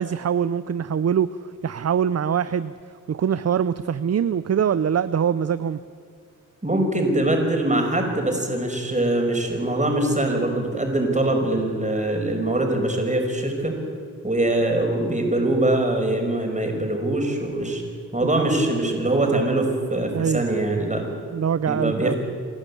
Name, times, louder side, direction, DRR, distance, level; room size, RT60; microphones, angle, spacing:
voice 1, 0.0-2.7 3.1-5.8 18.3-18.6 20.1-20.4 21.3-22.1, right 8 dB, 50° right, 15 dB, 0.6 m, -23 dB
voice 2, 6.6-13.8 14.2-17.8 18.1-21.2 21.6-22.2, right 1 dB, 20° right, 3 dB, 5.3 m, -23 dB
28.5 x 11.5 x 8.5 m, 2.4 s
cardioid pair, 55°, 33 cm